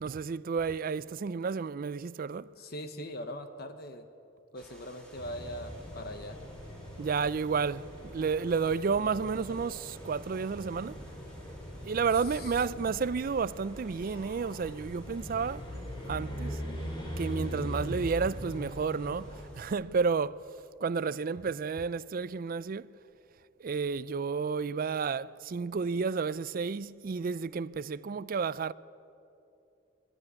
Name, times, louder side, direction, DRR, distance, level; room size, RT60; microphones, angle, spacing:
voice 1, 0.0-2.5 7.0-11.0 11.8-15.6 16.1-16.6 17.2-20.4 20.8-22.9 23.6-28.7, right 5 dB, 45° right, 0.4 m, -31 dB
voice 2, 2.6-4.1 4.5-6.4 12.2-12.7, equal, 50° left, 1.0 m, -41 dB
sound 1, 4.6-19.8, equal, 5° left, 3.0 m, -56 dB
sound 2, 5.1-19.4, equal, 25° left, 4.8 m, -41 dB
22.0 x 12.0 x 9.9 m
head